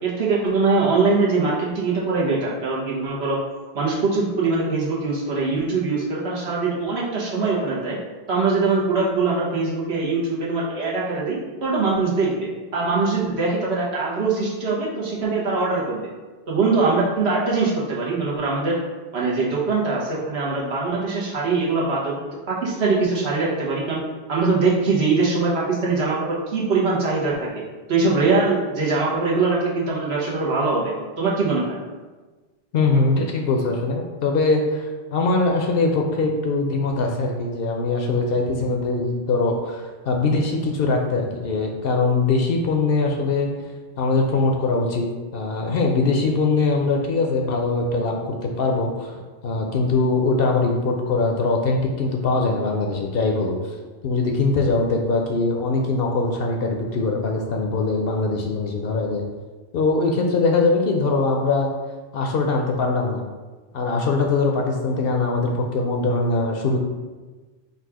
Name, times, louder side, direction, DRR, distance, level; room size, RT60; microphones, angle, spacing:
voice 1, 0.0-3.4 3.7-8.0 8.3-16.1 16.5-18.8 19.1-24.0 24.3-27.5 27.9-31.8, right 3 dB, 80° right, -5 dB, 1.3 m, -22 dB
voice 2, 32.7-43.5 44.0-45.1 45.3-49.2 49.4-53.7 54.0-59.2 59.7-61.7 62.1-63.2 63.7-66.8, left 3 dB, 70° left, 1 dB, 0.7 m, -22 dB
4.0 x 2.4 x 4.7 m, 1.3 s
omnidirectional pair, 1.1 m